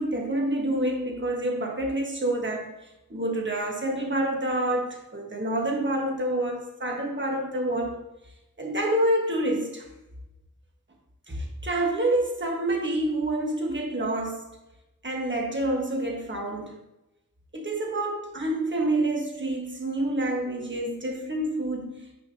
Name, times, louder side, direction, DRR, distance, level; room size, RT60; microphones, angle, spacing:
voice 1, 0.0-2.7 3.1-8.0 8.6-9.9 11.3-14.5 15.0-16.7 17.5-22.1, right 1 dB, 35° right, 0 dB, 1.4 m, -27 dB
7.6 x 6.1 x 2.8 m, 0.93 s
wide cardioid pair, 75°, 34 cm